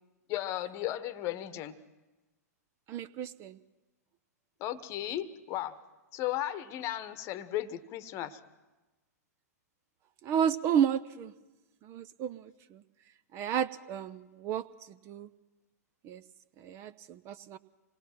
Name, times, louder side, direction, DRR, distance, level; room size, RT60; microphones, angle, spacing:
voice 1, 0.3-1.8 4.6-5.8 6.1-8.4, left 13 dB, 35° left, 15 dB, 1.1 m, -35 dB
voice 2, 2.9-3.6 10.2-11.3 11.8-12.8 13.3-14.7 15.1-15.3 16.0-16.2 16.6-17.6, right 8 dB, 30° right, 15 dB, 0.6 m, -32 dB
26.5 x 19.5 x 6.0 m, 1.1 s
figure-of-eight pair, 105°, 9 cm